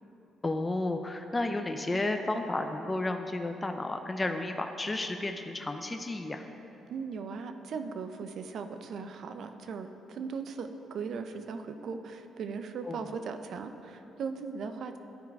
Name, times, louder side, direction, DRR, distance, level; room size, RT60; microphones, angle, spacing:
voice 1, 0.4-6.5 12.8-13.0, left 2 dB, 20° left, 5 dB, 0.4 m, -32 dB
voice 2, 6.9-15.0, right 5 dB, 65° right, 8 dB, 0.4 m, -38 dB
11.0 x 4.5 x 3.5 m, 3.0 s
cardioid pair, 90°, 0 cm